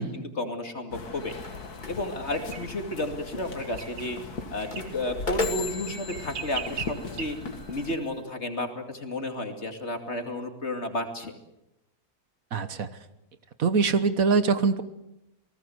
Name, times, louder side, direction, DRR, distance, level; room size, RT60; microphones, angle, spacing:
voice 1, 0.0-1.3 1.9-4.2 4.5-7.4 7.7-11.3, left 1 dB, 45° left, 5 dB, 2.9 m, -32 dB
sound 1, 0.9-7.9, left 4 dB, 75° left, 2.4 m, -40 dB
sound 2, 1.2-8.2, left 2 dB, 30° left, 2.6 m, -38 dB
sound 3, 2.3-2.6 3.6-4.1 4.6-4.9 5.4-7.2, right 7 dB, 85° right, 2.1 m, -38 dB
voice 2, 12.5-12.9 13.6-14.8, right 5 dB, 60° right, 12 dB, 1.6 m, -23 dB
28.5 x 19.0 x 7.9 m, 0.89 s
omnidirectional pair, 1.7 m